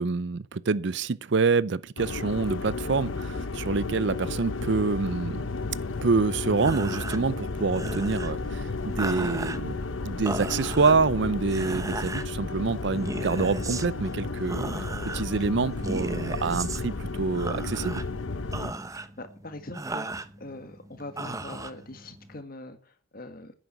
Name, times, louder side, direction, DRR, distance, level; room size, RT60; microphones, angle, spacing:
voice 1, 0.0-5.5 6.0-9.8 10.0-14.7 15.1-18.0, right 4 dB, 60° right, 0.5 m, -26 dB
sound 1, 2.0-18.7, left 3 dB, 70° left, 0.8 m, -33 dB
sound 2, 6.5-22.4, right 2 dB, 15° right, 0.8 m, -37 dB
voice 2, 18.9-23.5, left 2 dB, 45° left, 1.8 m, -43 dB
10.5 x 9.2 x 7.8 m
head